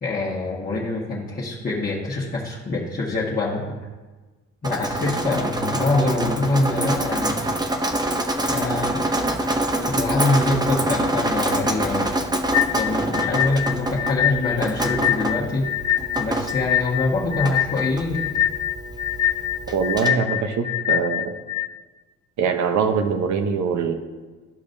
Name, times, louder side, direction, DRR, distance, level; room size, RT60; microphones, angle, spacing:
voice 1, 0.0-3.8 4.6-7.4 8.4-9.1 9.9-12.1 12.7-15.7 16.2-18.4, left 2 dB, 30° left, -7 dB, 1.4 m, -24 dB
Drip, 4.6-20.1, right 1 dB, 15° right, 0.6 m, -26 dB
sound 1, 12.5-21.7, left 11 dB, 55° left, 0.6 m, -24 dB
voice 2, 19.7-21.3 22.4-24.0, right 6 dB, 70° right, 7 dB, 0.9 m, -23 dB
13.5 x 5.1 x 2.7 m, 1.3 s
cardioid pair, 90°, 30 cm